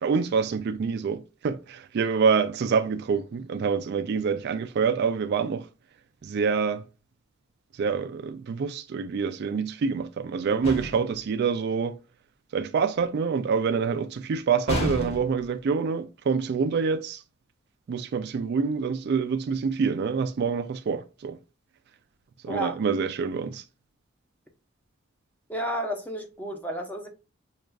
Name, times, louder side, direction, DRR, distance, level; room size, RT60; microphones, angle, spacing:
voice 1, 0.0-5.7 6.2-6.8 7.7-12.0 12.5-17.2 17.9-21.4 22.4-23.6, right 5 dB, 55° right, 0.3 m, -26 dB
sound 1, 10.6-11.2 14.7-15.5, equal, 30° left, 1.1 m, -30 dB
voice 2, 22.5-22.8 25.5-27.1, equal, 10° left, 0.7 m, -31 dB
6.2 x 2.4 x 2.3 m
head